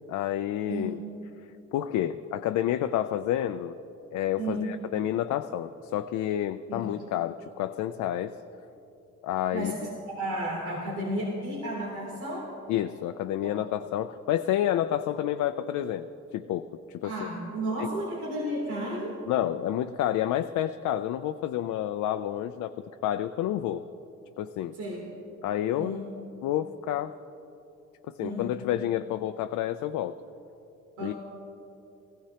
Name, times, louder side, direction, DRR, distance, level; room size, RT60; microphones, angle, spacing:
voice 1, 0.1-1.0 1.7-3.7 4.1-8.3 9.2-9.7 12.7-17.1 17.8-17.9 19.3-22.7 23.0-23.8 24.4-24.7 25.4-26.1 26.4-27.2 28.1-30.2 31.0-31.1, left 11 dB, 80° left, 8 dB, 0.5 m, -29 dB
voice 2, 4.4-4.7 6.7-6.9 9.5-12.5 13.4-13.6 17.0-19.2 24.8-25.1 25.8-26.1 28.2-28.6 31.0-31.1, right 1 dB, 80° right, -5 dB, 3.1 m, -33 dB
19.0 x 15.5 x 2.9 m, 2.9 s
cardioid pair, 90°, 30 cm